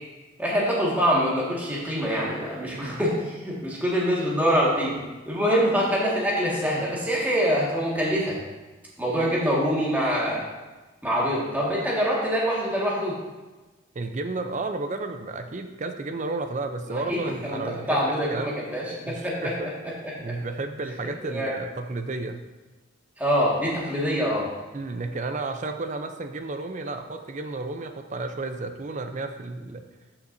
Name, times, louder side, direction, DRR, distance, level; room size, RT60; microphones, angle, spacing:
voice 1, 0.4-8.4 9.0-10.5 11.0-13.1 16.9-19.5 19.8-20.4 21.3-21.5 23.2-24.5, equal, 10° right, -5 dB, 1.8 m, -25 dB
voice 2, 13.9-18.5 19.0-19.7 20.2-22.4 24.7-29.8, right 3 dB, 35° right, 7 dB, 0.5 m, -32 dB
13.0 x 5.9 x 2.7 m, 1.2 s
head